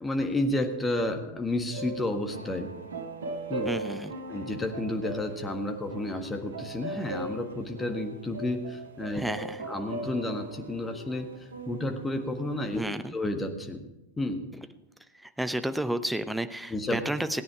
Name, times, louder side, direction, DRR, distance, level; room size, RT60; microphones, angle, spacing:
voice 1, 0.0-2.7 3.5-3.7 4.3-9.2 9.7-11.3 11.7-12.8 13.1-13.8 14.2-14.4 16.7-17.0, left 1 dB, 10° left, 5 dB, 1.6 m, -31 dB
sound 1, 1.7-12.8, right 2 dB, 65° right, 1.4 m, -39 dB
voice 2, 3.6-4.2 9.1-9.6 12.7-13.2 14.5-14.7 15.2-17.4, right 1 dB, 5° right, 10 dB, 0.8 m, -31 dB
17.5 x 9.5 x 4.8 m, 0.96 s
figure-of-eight pair, 90°, 0 cm